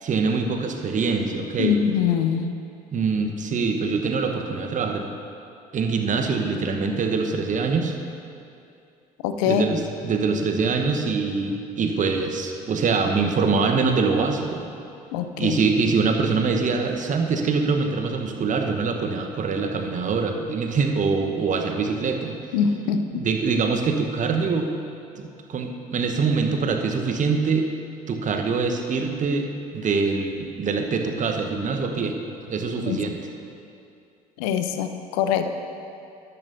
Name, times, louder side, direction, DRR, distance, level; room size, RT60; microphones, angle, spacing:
voice 1, 0.0-1.8 2.9-5.1 5.7-7.9 9.4-14.7 15.4-22.4 23.2-24.7 25.2-27.7 28.1-32.2 32.5-33.2, right 4 dB, 40° right, 3 dB, 1.1 m, -24 dB
voice 2, 1.6-2.5 9.2-9.6 15.1-15.6 22.5-23.2 32.9-33.0 34.4-35.5, left 8 dB, 65° left, 8 dB, 0.6 m, -23 dB
12.5 x 12.0 x 2.7 m, 2.6 s
figure-of-eight pair, 55°, 20 cm